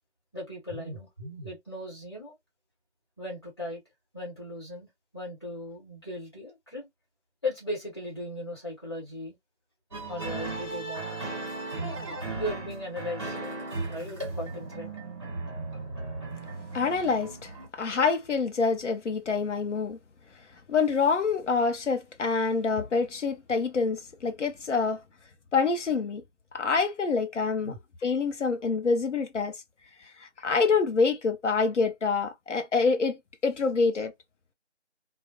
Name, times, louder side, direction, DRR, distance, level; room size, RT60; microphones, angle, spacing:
voice 1, 0.3-2.3 3.2-3.8 4.1-6.9 7.4-9.4 10.1-11.2 12.3-14.9 27.6-27.8, left 1 dB, 20° left, 0.9 m, -37 dB
sound 1, 9.9-17.7, right 3 dB, 25° right, 0.8 m, -36 dB
voice 2, 16.7-20.0 20.7-25.0 25.5-26.2 26.5-27.7 28.0-29.6 30.0-34.1, left 4 dB, 85° left, 0.6 m, -26 dB
2.3 x 2.0 x 2.7 m
figure-of-eight pair, 170°, 35 cm